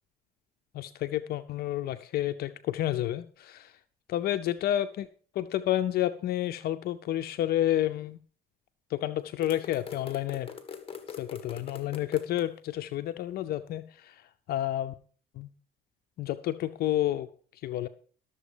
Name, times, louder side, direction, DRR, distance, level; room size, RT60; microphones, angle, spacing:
voice 1, 0.7-3.8 4.1-5.1 5.3-8.2 8.9-10.5 11.1-14.9 15.3-15.5 16.2-17.9, left 13 dB, 65° left, 11 dB, 0.6 m, -30 dB
sound 1, 9.4-12.4, left 6 dB, 30° left, 1.7 m, -42 dB
12.5 x 7.2 x 5.0 m, 0.43 s
cardioid pair, 110°, 17 cm